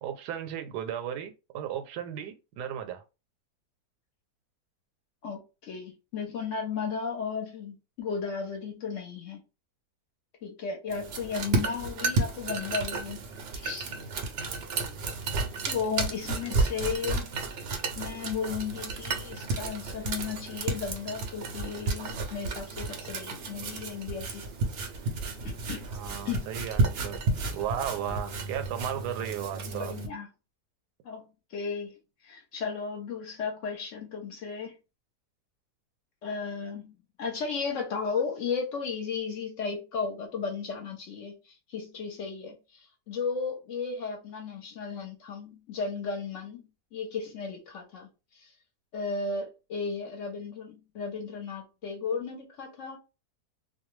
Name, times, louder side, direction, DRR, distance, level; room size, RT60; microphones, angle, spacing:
voice 1, 0.0-3.0 25.9-27.2 27.5-29.9, right 9 dB, 90° right, 1.1 m, -35 dB
voice 2, 5.2-9.4 10.4-13.2 13.5-14.0 15.7-17.3 18.0-24.4 25.4-25.9 26.2-26.5 29.7-30.3 31.0-31.9 32.2-34.8 36.2-46.6 46.9-48.5 48.9-53.0, left 5 dB, 60° left, 0.9 m, -35 dB
sound 1, 10.9-30.1, right 3 dB, 65° right, 0.6 m, -32 dB
2.5 x 2.2 x 3.0 m
omnidirectional pair, 1.7 m